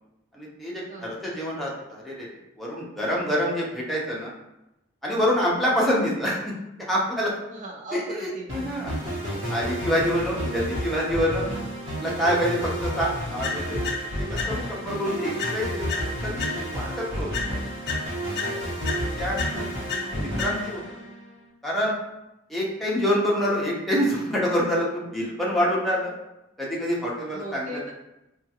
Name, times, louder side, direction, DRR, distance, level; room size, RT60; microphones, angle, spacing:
voice 1, 0.3-2.3 2.6-4.3 5.0-7.4 7.9-9.1 9.5-11.5 12.0-13.8 14.3-17.7 18.9-19.5 19.9-20.8 21.6-22.0 22.5-26.1 26.6-27.8, equal, ahead, -5 dB, 0.7 m, -26 dB
voice 2, 0.9-1.3 7.5-9.1 9.3-10.0 10.3-10.8 27.3-27.9, right 1 dB, 40° right, 0 dB, 0.5 m, -40 dB
sound 1, 8.5-21.4, equal, 80° right, 1.1 m, -31 dB
sound 2, 13.4-14.9 15.4-16.9 17.3-20.9, left 4 dB, 60° left, 0.6 m, -33 dB
3.5 x 2.4 x 2.9 m, 0.92 s
head